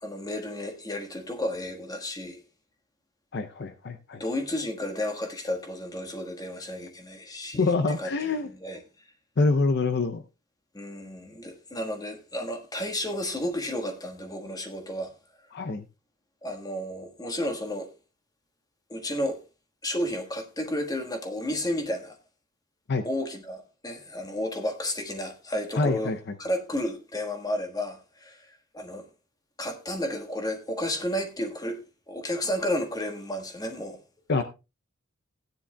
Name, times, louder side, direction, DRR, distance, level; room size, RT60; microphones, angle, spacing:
voice 1, 0.0-2.4 4.2-8.1 8.6-8.8 10.7-15.1 16.4-17.9 18.9-19.4 19.8-22.2 23.0-26.1 26.4-29.1 29.6-34.0, left 1 dB, 20° left, 1.5 m, -32 dB
voice 2, 3.3-4.2 7.5-8.5 9.4-10.2 15.5-15.8 22.9-23.1 25.8-26.2 34.3-34.4, left 3 dB, 55° left, 0.6 m, -25 dB
16.0 x 9.9 x 2.2 m
head